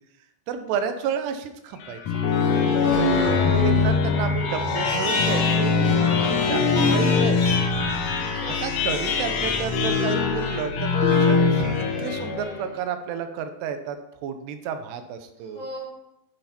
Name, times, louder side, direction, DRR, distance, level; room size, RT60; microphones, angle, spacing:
voice 1, 0.5-2.0 2.9-5.8 6.2-6.6 6.9-7.8 8.5-15.6, right 7 dB, 85° right, 8 dB, 3.0 m, -31 dB
sound 1, 1.8-12.6, left 4 dB, 70° left, 1.6 m, -22 dB
voice 2, 2.7-3.3 5.9-6.5 8.3-8.9 15.4-15.8, equal, 45° left, -5 dB, 1.5 m, -40 dB
9.0 x 8.0 x 4.3 m, 0.85 s
omnidirectional pair, 4.7 m